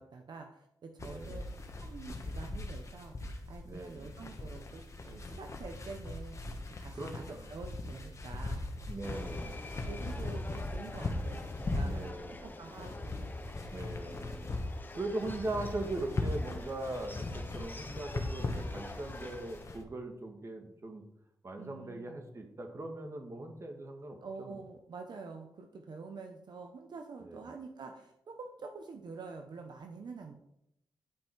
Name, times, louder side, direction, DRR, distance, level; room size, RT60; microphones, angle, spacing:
voice 1, 0.0-1.4 1.8-7.2 7.5-8.6 9.3-12.0 12.4-13.4 21.6-22.2 24.2-30.3, right 4 dB, 65° right, 4 dB, 0.9 m, -47 dB
sound 1, 1.0-19.8, left 2 dB, 40° left, 1.4 m, -39 dB
voice 2, 1.0-1.4 3.6-4.1 6.9-7.5 8.9-9.6 11.8-12.5 13.7-14.5 14.9-21.0 21.4-24.6 27.2-27.5, right 2 dB, 35° right, 4 dB, 1.6 m, -40 dB
Subway metro underground, 9.0-19.6, left 2 dB, 25° left, 0.9 m, -48 dB
10.5 x 5.5 x 4.6 m, 0.78 s
wide cardioid pair, 105°, 8 cm